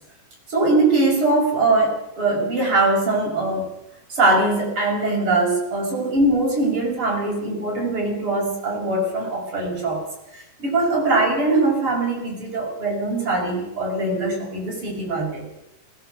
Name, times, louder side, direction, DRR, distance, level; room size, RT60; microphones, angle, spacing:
voice 1, 0.5-3.7 4.1-10.0 10.3-15.4, right 2 dB, 30° right, -1 dB, 6.8 m, -21 dB
20.0 x 17.5 x 8.0 m, 0.89 s
omnidirectional pair, 4.6 m